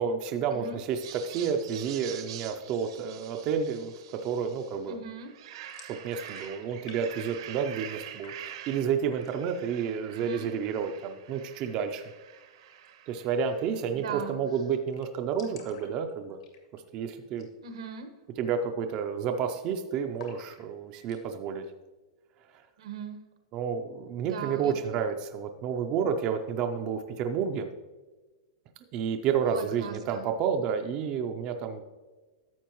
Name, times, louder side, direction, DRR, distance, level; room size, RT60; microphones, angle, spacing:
voice 1, 0.0-5.0 6.0-12.0 13.1-16.4 16.7-17.5 18.4-21.6 23.5-27.7 28.9-31.8, right 7 dB, 25° right, 6 dB, 0.4 m, -30 dB
sound 1, 0.9-4.8 5.2-13.9, right 11 dB, 55° right, 0.8 m, -46 dB
voice 2, 4.9-5.3 10.2-10.5 13.9-14.4 17.6-18.1 22.8-23.3 24.2-24.9 29.4-30.2, right 6 dB, 85° right, 6 dB, 1.3 m, -39 dB
sound 2, 5.6-7.0 7.2-8.0 8.2-8.8 9.1-9.6 10.0-10.1 10.4-11.1 12.7-12.9 13.2-13.3 13.5-13.6 14.0-14.3 14.6-14.7 14.9-16.9 17.3-17.6 17.9-18.0 18.5-18.8 19.1-19.7 20.2-21.2, left 7 dB, 75° left, 2.1 m, -53 dB
11.5 x 7.5 x 3.0 m, 1.3 s
supercardioid pair, 175°, 3 cm